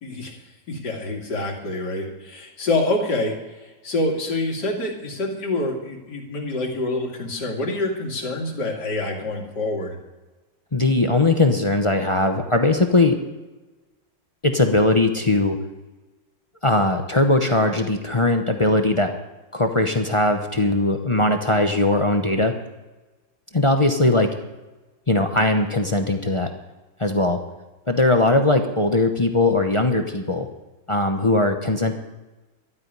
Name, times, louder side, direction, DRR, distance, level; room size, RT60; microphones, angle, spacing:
voice 1, 0.0-0.3 0.7-10.0, left 2 dB, 65° left, 1 dB, 2.9 m, -26 dB
voice 2, 10.7-13.2 14.4-15.6 16.6-19.1 19.5-22.5 23.5-24.3 25.1-26.5 27.0-27.4 27.9-30.5 30.9-31.9, left 2 dB, 30° left, 5 dB, 0.5 m, -20 dB
12.5 x 8.7 x 9.4 m, 1.2 s
omnidirectional pair, 2.0 m